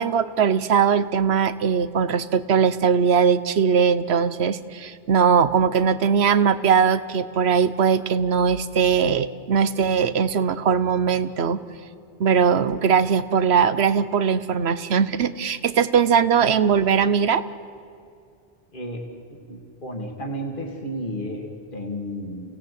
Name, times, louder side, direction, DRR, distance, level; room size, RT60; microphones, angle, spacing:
voice 1, 0.0-11.6 12.2-17.4, right 7 dB, 75° right, 14 dB, 1.1 m, -20 dB
voice 2, 18.7-19.0 19.3-22.6, equal, 50° left, 1 dB, 2.7 m, -32 dB
28.5 x 17.5 x 8.5 m, 2.5 s
omnidirectional pair, 1.1 m